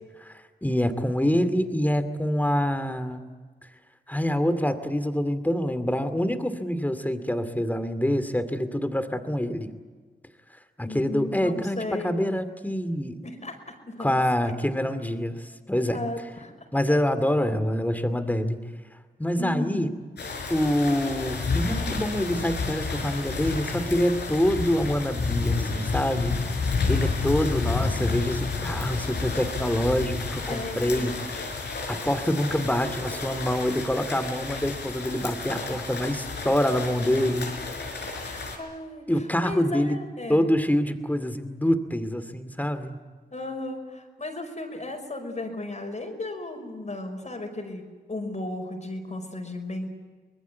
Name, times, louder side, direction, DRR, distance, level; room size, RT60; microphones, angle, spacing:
voice 1, 0.2-3.2 4.1-9.7 10.8-13.2 14.0-16.0 16.7-18.6 19.2-19.9 20.5-31.4 31.9-37.5 37.9-38.1 39.1-40.0 40.3-43.0, equal, 10° left, 10 dB, 2.4 m, -26 dB
voice 2, 10.8-12.1 13.2-14.1 14.4-14.5 15.9-16.7 19.4-19.9 27.1-27.3 30.5-31.1 38.2-40.5 43.3-49.9, left 2 dB, 45° left, 3 dB, 5.4 m, -35 dB
sound 1, 20.2-38.6, left 4 dB, 85° left, 4.8 m, -30 dB
25.0 x 20.5 x 8.3 m, 1.4 s
cardioid pair, 60°, 17 cm